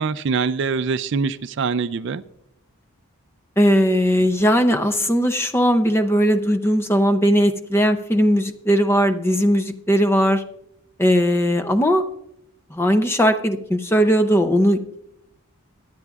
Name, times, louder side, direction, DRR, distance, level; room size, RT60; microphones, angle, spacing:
voice 1, 0.0-2.2, right 5 dB, 55° right, 0.4 m, -23 dB
voice 2, 3.6-10.4 11.0-12.0 12.7-15.0, equal, 10° left, 0.5 m, -18 dB
23.0 x 9.1 x 2.4 m
head